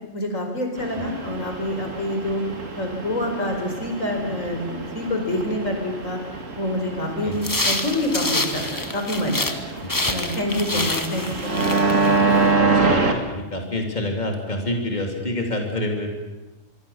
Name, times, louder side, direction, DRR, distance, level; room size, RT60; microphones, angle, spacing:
voice 1, 0.1-2.4 2.7-6.2 6.6-9.6 10.1-12.6, left 1 dB, 85° left, 3 dB, 5.2 m, -27 dB
sound 1, 0.8-13.1, right 3 dB, 75° right, 2.6 m, -26 dB
sound 2, 7.4-9.6 9.9-12.5, left 2 dB, 15° left, 1.4 m, -27 dB
voice 2, 9.8-10.3 10.7-10.9 12.1-16.2, left 1 dB, 35° left, 2 dB, 3.1 m, -28 dB
25.0 x 24.5 x 7.1 m, 1.1 s
omnidirectional pair, 1.3 m